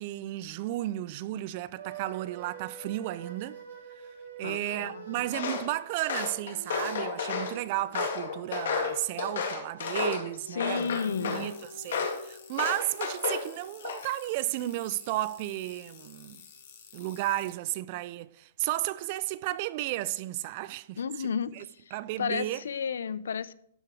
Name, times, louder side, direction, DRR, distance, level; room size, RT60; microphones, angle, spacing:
voice 1, 0.0-3.6 4.4-16.4 16.9-21.3 21.5-21.6 21.9-22.6, right 15 dB, 35° right, 0.3 m, -33 dB
sound 1, 1.8-9.1 10.2-16.3, right 4 dB, 85° right, 4.2 m, -48 dB
voice 2, 4.4-5.2 10.5-11.5 21.0-23.5, left 6 dB, 85° left, 0.5 m, -33 dB
Walk footsteps, 5.3-5.7 6.0-7.5 7.9-10.3 10.6-11.5 11.9-12.2 12.6-13.5 13.8-14.3, left 5 dB, 70° left, 2.0 m, -32 dB
sound 2, 10.7-17.5, left 8 dB, 50° left, 1.9 m, -52 dB
12.5 x 4.8 x 4.8 m
hypercardioid pair, 165°, 0 cm